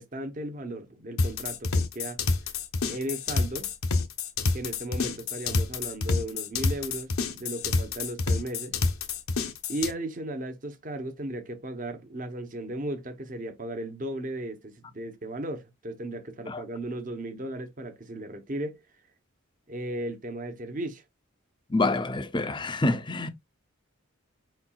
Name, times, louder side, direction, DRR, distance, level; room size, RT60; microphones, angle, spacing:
voice 1, 0.0-2.2 2.9-3.7 4.5-8.8 9.7-18.8 19.7-21.0, right 1 dB, 40° right, 0.8 m, -36 dB
sound 1, 1.2-9.9, left 3 dB, 80° left, 0.8 m, -28 dB
voice 2, 21.7-23.3, left 2 dB, 20° left, 0.5 m, -27 dB
4.9 x 4.3 x 2.3 m
head